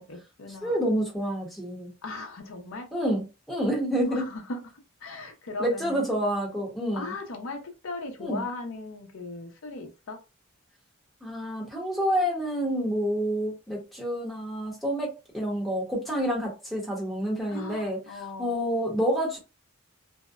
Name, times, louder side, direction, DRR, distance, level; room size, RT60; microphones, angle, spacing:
voice 1, 0.0-0.7 2.0-2.9 4.1-4.6 5.0-6.1 6.9-10.2 17.5-18.5, left 3 dB, 70° left, 0.6 m, -38 dB
voice 2, 0.6-1.9 2.9-4.3 5.6-7.1 8.2-8.4 11.2-18.0 18.4-19.4, equal, ahead, 0.8 m, -28 dB
2.6 x 2.1 x 2.3 m
head